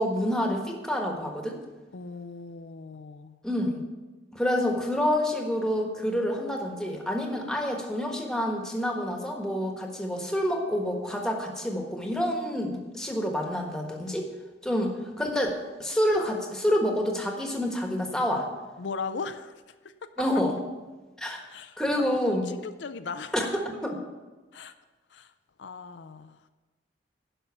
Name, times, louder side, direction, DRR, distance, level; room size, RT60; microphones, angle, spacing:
voice 1, 0.0-1.6 3.4-3.8 4.3-14.3 14.6-18.5 20.2-20.6 21.2-21.4 21.8-22.5 23.3-24.0, equal, 5° left, 1 dB, 1.4 m, -28 dB
voice 2, 1.9-3.4 18.8-19.5 19.8-19.9 21.5-23.3 24.5-24.7 25.1-25.3 25.6-26.4, left 4 dB, 80° left, 10 dB, 0.5 m, -38 dB
11.0 x 5.6 x 7.0 m, 1.2 s
head